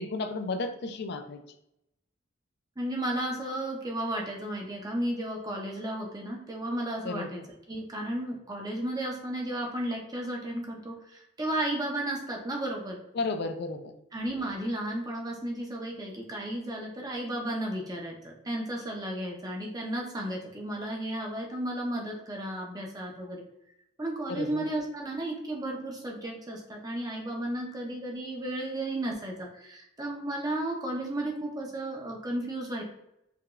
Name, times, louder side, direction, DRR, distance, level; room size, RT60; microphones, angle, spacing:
voice 1, 0.0-1.4 7.0-7.3 13.1-13.9 24.3-24.7, left 3 dB, 55° left, 8 dB, 0.4 m, -33 dB
voice 2, 2.8-7.4 7.7-13.0 14.1-23.4 24.0-32.8, right 1 dB, 20° right, -1 dB, 0.5 m, -33 dB
4.7 x 2.3 x 2.3 m, 0.82 s
head